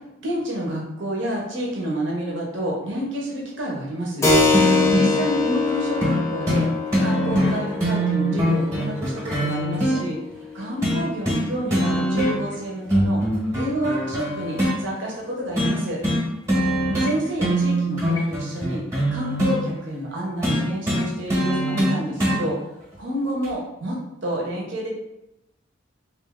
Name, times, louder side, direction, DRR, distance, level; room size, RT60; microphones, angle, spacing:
voice 1, 0.2-4.3 4.9-6.7 7.0-10.2 10.5-13.2 13.5-16.0 17.0-18.8 19.1-22.6 23.0-24.0 24.2-24.9, right 1 dB, 70° right, -2 dB, 0.9 m, -29 dB
Keyboard (musical), 4.2-12.4, left 3 dB, 15° left, 0.6 m, -25 dB
sound 1, 4.5-5.1 6.0-6.2 6.5-6.6 6.9-10.0 10.8-11.4 11.7-12.5 12.9-14.8 15.6-15.8 16.0-16.2 16.5-17.1 17.4-19.6 20.4-22.4 23.4-23.5, equal, 15° right, 1.0 m, -22 dB
3.1 x 2.7 x 3.6 m, 0.89 s
head